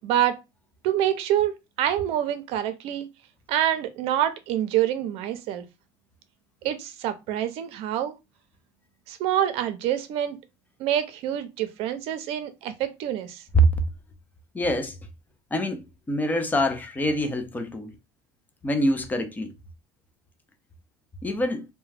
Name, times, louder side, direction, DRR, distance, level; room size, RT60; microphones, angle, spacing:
voice 1, 0.0-0.4 0.8-3.1 3.5-5.7 6.6-8.2 9.1-10.4 10.8-13.4, right 11 dB, 60° right, 0.5 m, -26 dB
voice 2, 14.5-15.0 15.5-17.9 18.6-19.5 21.2-21.7, right 1 dB, 15° left, 0.5 m, -24 dB
2.3 x 2.1 x 3.3 m
supercardioid pair, 115°, 11 cm